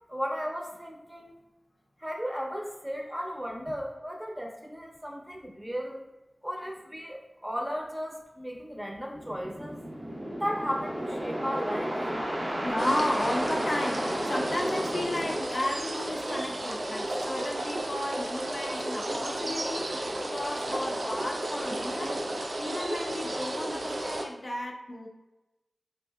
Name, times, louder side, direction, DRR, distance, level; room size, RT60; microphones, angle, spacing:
voice 1, 0.1-1.3 2.0-6.0 6.4-9.8 10.4-12.0 12.3-12.7, equal, 15° right, -1 dB, 0.7 m, -35 dB
sound 1, 9.1-15.4, equal, 45° right, 0.7 m, -33 dB
voice 2, 12.6-19.9 20.3-22.2 22.6-25.1, left 1 dB, 55° left, 1 dB, 0.4 m, -34 dB
sound 2, 12.8-24.2, right 1 dB, 80° right, 0.4 m, -33 dB
4.2 x 2.5 x 2.3 m, 1.0 s
wide cardioid pair, 65°, 0 cm